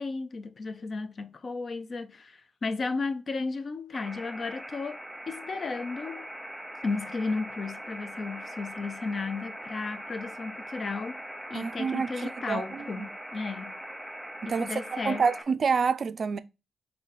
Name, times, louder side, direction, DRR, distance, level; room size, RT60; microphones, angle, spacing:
voice 1, 0.0-5.0 5.3-6.3 6.8-11.2 11.5-13.8 14.5-15.3, left 4 dB, 55° left, 0.5 m, -34 dB
sound 1, 3.9-15.4, right 1 dB, ahead, 1.0 m, -41 dB
voice 2, 11.5-13.1 14.4-16.4, right 5 dB, 60° right, 0.3 m, -28 dB
3.8 x 2.7 x 3.9 m
supercardioid pair, 50°, 0 cm